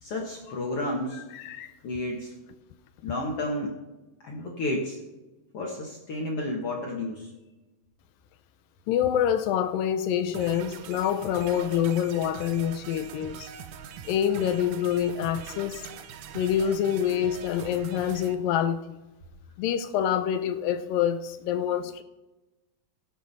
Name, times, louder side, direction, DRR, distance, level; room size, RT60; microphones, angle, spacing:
voice 1, 0.0-1.3 1.8-2.3 3.0-3.8 4.2-5.0 5.5-7.3, left 1 dB, 55° left, 1.8 m, -31 dB
voice 2, 1.3-1.7 8.9-13.5 14.1-15.9 16.4-18.8 19.6-22.0, left 9 dB, 80° left, 2.2 m, -26 dB
sound 1, 10.3-18.4, right 8 dB, 80° right, 1.6 m, -42 dB
18.0 x 7.4 x 4.1 m
omnidirectional pair, 4.3 m